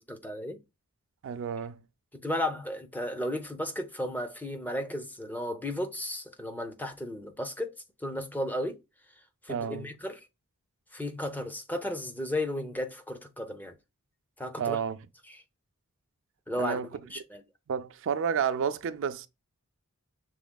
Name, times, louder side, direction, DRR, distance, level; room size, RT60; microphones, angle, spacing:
voice 1, 0.1-0.6 2.1-8.8 9.4-10.3 10.9-13.8 14.4-14.8 15.3-15.4 16.5-17.4, left 1 dB, 10° left, 0.6 m, -34 dB
voice 2, 1.2-1.8 9.5-9.9 14.6-15.0 16.6-16.9 17.7-19.3, right 7 dB, 60° right, 0.4 m, -30 dB
6.0 x 3.6 x 2.2 m
head